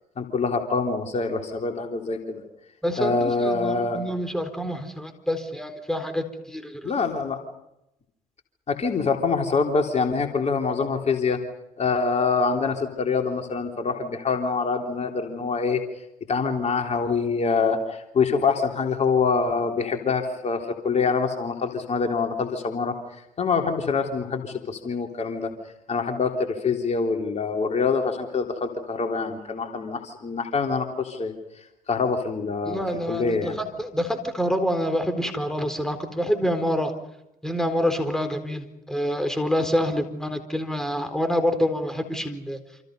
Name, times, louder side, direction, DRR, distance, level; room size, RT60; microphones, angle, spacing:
voice 1, 0.2-2.4 3.0-4.0 6.8-7.4 8.7-11.4 11.8-15.8 16.3-22.9 23.4-25.5 25.9-32.8 33.1-33.6, left 4 dB, 35° left, 3 dB, 3.5 m, -25 dB
voice 2, 2.8-6.9 32.7-36.9 37.4-42.6, equal, ahead, 7 dB, 4.2 m, -27 dB
28.0 x 27.0 x 5.5 m, 0.85 s
figure-of-eight pair, 55°, 19 cm